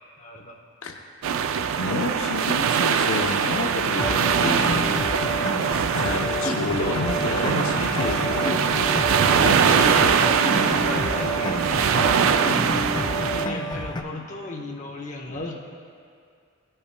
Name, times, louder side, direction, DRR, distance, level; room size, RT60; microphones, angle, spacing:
voice 1, 0.1-0.6 9.7-12.7 13.3-15.5, left 2 dB, 35° left, 0 dB, 0.8 m, -36 dB
sound 1, 1.2-13.5, right 7 dB, 70° right, 0.3 m, -22 dB
voice 2, 1.8-4.9 5.9-8.8 9.3-10.1, left 3 dB, 75° left, 2 dB, 0.6 m, -30 dB
sound 2, 4.0-12.9, left 2 dB, 60° left, 1.8 m, -42 dB
sound 3, 4.0-14.0, left 1 dB, 20° left, 0.4 m, -29 dB
15.5 x 5.6 x 2.2 m, 2.3 s
head